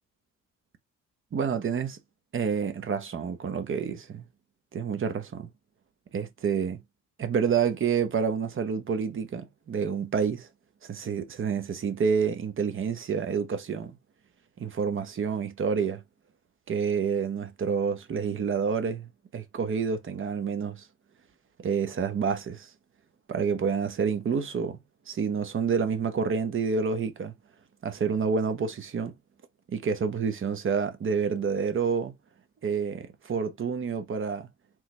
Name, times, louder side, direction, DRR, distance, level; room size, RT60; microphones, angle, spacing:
voice 1, 1.3-2.0 2.3-4.3 4.7-5.5 6.1-6.8 7.2-10.5 10.8-14.0 14.6-16.0 16.7-20.8 21.6-22.7 23.3-24.8 25.1-27.3 27.8-29.1 29.7-32.1 32.6-34.5, right 6 dB, 40° right, 0.9 m, -28 dB
3.7 x 3.0 x 3.2 m
cardioid pair, 90°, 30 cm